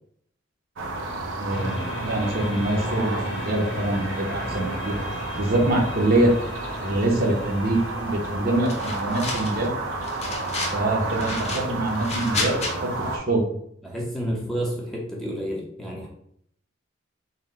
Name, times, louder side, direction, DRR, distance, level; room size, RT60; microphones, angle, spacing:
sound 1, 0.8-13.2, right 2 dB, 85° right, 0.7 m, -31 dB
voice 1, 1.4-5.0 5.4-6.3 6.8-9.7 10.7-13.4, right 1 dB, 50° right, 1 dB, 0.8 m, -24 dB
sound 2, 1.5-12.6, equal, 60° left, 0.9 m, -37 dB
sound 3, 8.7-9.7 10.0-10.8 11.2-12.7, left 3 dB, 35° left, 0.7 m, -31 dB
voice 2, 13.8-16.1, equal, ahead, -3 dB, 0.7 m, -30 dB
4.0 x 2.2 x 4.2 m, 0.70 s
head